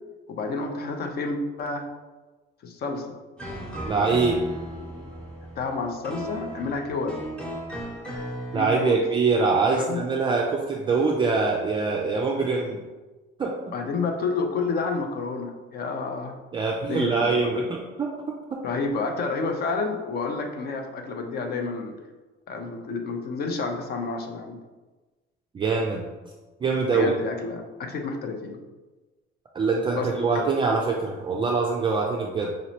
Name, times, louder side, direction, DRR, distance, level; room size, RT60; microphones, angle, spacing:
voice 1, 0.3-1.9 2.6-3.2 5.6-7.2 8.5-9.1 9.7-10.0 13.7-16.4 16.9-17.7 18.6-22.0 22.5-24.6 26.9-28.6 29.9-30.5, left 4 dB, 50° left, 4 dB, 0.5 m, -30 dB
sound 1, 3.4-8.7, equal, 5° left, 0.9 m, -36 dB
voice 2, 3.9-4.4 8.5-12.8 13.4-13.7 16.5-18.6 25.5-26.0 26.6-27.1 29.5-32.5, right 4 dB, 25° right, -1 dB, 0.3 m, -24 dB
5.1 x 3.0 x 2.8 m, 1.2 s
cardioid pair, 150°, 21 cm